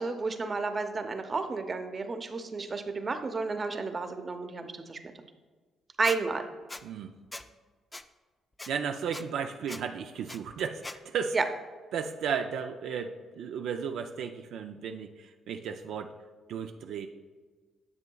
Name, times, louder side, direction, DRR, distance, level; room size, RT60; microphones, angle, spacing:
voice 1, 0.0-5.0 6.0-6.4 11.3-11.4, right 4 dB, 35° right, 7 dB, 0.7 m, -31 dB
Squeak, 6.0-6.2 6.7-6.8 7.3-7.5 7.9-8.0 8.6-8.7 9.1-9.2 9.7-9.8 10.3-10.4 10.8-11.0, left 2 dB, 15° left, 0.4 m, -40 dB
voice 2, 6.8-7.1 8.7-11.4 11.9-16.1 16.5-17.1, right 7 dB, 75° right, 5 dB, 0.4 m, -34 dB
9.5 x 7.2 x 2.3 m, 1.4 s
cardioid pair, 90°, 0 cm